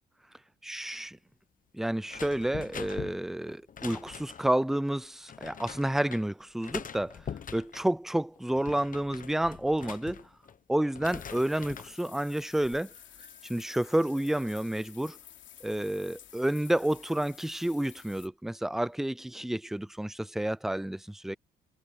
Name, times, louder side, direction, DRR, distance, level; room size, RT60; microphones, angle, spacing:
voice 1, 0.6-1.2 1.7-7.2 7.5-10.2 10.7-12.9 13.5-15.2 15.6-21.4, right 1 dB, ahead, 0.4 m, -30 dB
sound 1, 2.1-4.6 5.3-6.2 6.6-7.9 8.4-10.6 10.9-12.0 12.4-12.8, left 7 dB, 45° left, 1.0 m, -43 dB
sound 2, 11.0-18.3, left 10 dB, 70° left, 3.1 m, -52 dB
sound 3, 12.2-12.4 12.9-14.7, right 1 dB, 30° right, 3.8 m, -61 dB
cardioid pair, 90°, 20 cm